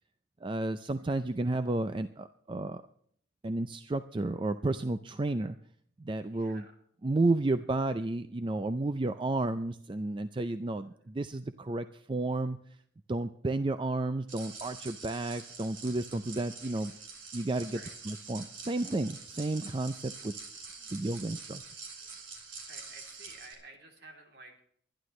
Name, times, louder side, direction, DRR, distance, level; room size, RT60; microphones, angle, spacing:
voice 1, 0.4-2.8 3.4-5.6 6.0-6.6 7.0-12.6 13.1-16.9 17.3-17.8 18.1-20.3 20.9-21.6, right 2 dB, 25° right, 11 dB, 0.4 m, -32 dB
voice 2, 6.2-6.7 16.6-16.8 17.7-17.9 22.0-22.3 22.7-24.6, right 2 dB, 55° right, 2 dB, 3.2 m, -53 dB
sound 1, 14.3-23.5, right 4 dB, 90° right, 3.6 m, -46 dB
23.0 x 11.0 x 3.2 m, 0.64 s
head